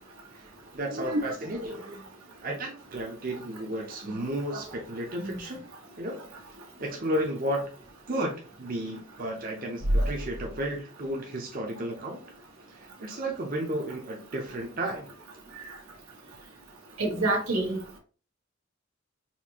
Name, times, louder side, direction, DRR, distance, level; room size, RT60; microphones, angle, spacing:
voice 1, 0.7-1.8 2.4-5.6 6.0-6.3 6.8-7.7 8.1-12.2 13.0-15.1, right 1 dB, 40° right, 0.7 m, -33 dB
voice 2, 17.0-18.0, right 1 dB, 90° right, 1.3 m, -27 dB
4.3 x 2.7 x 2.8 m
head